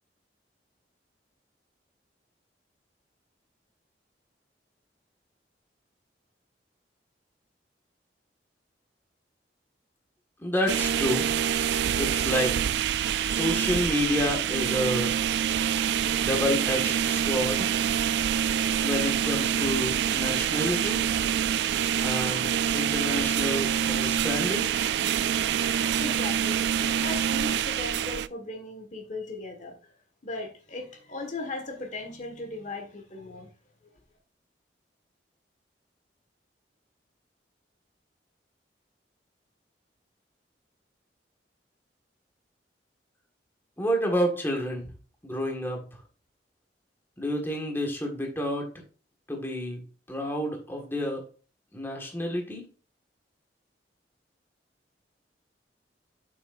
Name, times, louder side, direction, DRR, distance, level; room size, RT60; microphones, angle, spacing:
voice 1, 10.4-11.3 12.0-12.6 13.2-15.1 16.2-17.7 18.8-21.0 22.0-24.7 43.8-44.9 45.2-45.8 47.2-48.7 49.3-49.8 50.1-51.2 51.7-52.6, equal, 15° left, 1 dB, 1.6 m, -29 dB
sound 1, 10.7-28.3, right 9 dB, 70° right, 0.3 m, -26 dB
voice 2, 26.0-29.7 30.2-33.5, left 2 dB, 45° left, 4 dB, 1.5 m, -37 dB
7.9 x 6.2 x 2.5 m, 0.37 s
head